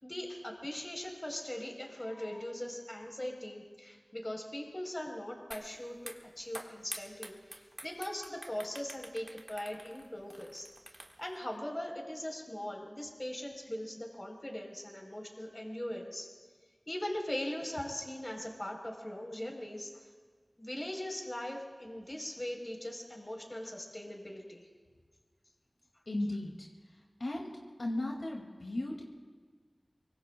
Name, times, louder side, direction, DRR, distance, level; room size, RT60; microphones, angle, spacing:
voice 1, 0.0-7.4 7.8-10.7 11.2-16.3 16.9-19.9 20.6-24.7, left 1 dB, 30° left, 1 dB, 3.6 m, -40 dB
sound 1, 5.5-5.7 6.0-11.4, right 1 dB, 35° right, 1.5 m, -47 dB
voice 2, 26.1-26.7 27.2-27.5 27.8-29.0, left 1 dB, 80° left, -1 dB, 2.0 m, -35 dB
24.5 x 23.5 x 2.2 m, 1.6 s
wide cardioid pair, 55°, 0 cm